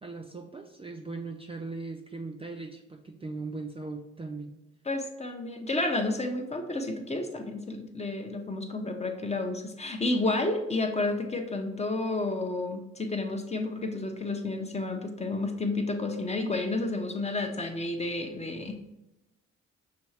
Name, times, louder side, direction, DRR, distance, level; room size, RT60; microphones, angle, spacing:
voice 1, 0.0-4.5, right 3 dB, 20° right, 3 dB, 0.4 m, -39 dB
voice 2, 4.9-18.8, left 2 dB, 20° left, 5 dB, 0.7 m, -31 dB
5.9 x 2.7 x 3.2 m, 0.92 s
supercardioid pair, 60°, 30 cm